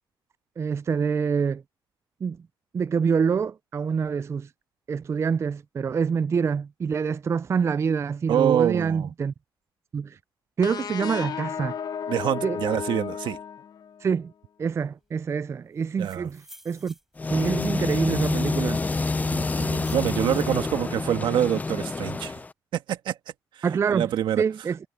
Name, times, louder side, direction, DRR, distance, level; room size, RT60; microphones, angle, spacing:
voice 1, 0.6-1.6 2.2-2.4 2.7-4.5 4.9-9.3 9.9-10.2 10.6-11.8 12.4-12.6 14.0-14.3 14.6-16.9 17.3-18.8 19.7-19.8 23.6-24.1 24.4-24.8, right 6 dB, 35° right, 0.3 m, -26 dB
voice 2, 8.3-9.1 12.1-13.4 16.0-16.3 19.2-22.4 22.7-23.2 23.6-24.4, right 10 dB, 80° right, 1.5 m, -26 dB
sound 1, 10.6-14.2, left 7 dB, 55° left, 1.2 m, -33 dB
sound 2, 15.8-17.9 18.5-20.2, equal, 5° right, 7.0 m, -52 dB
sound 3, 17.2-22.5, left 3 dB, 20° left, 0.5 m, -27 dB
cardioid pair, 95°, 8 cm